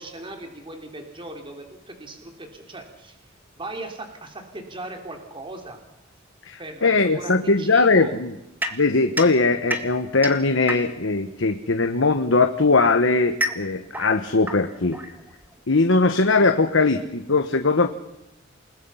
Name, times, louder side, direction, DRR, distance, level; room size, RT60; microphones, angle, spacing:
voice 1, 0.0-3.2 3.6-5.8 6.6-8.1, right 2 dB, 25° right, 3 dB, 3.3 m, -38 dB
voice 2, 6.5-8.3 8.7-15.0 15.7-17.9, left 3 dB, 70° left, 7 dB, 1.2 m, -20 dB
sound 1, 8.6-11.2 12.2-15.6, equal, 10° right, 1.8 m, -32 dB
28.5 x 20.0 x 5.7 m, 0.91 s
head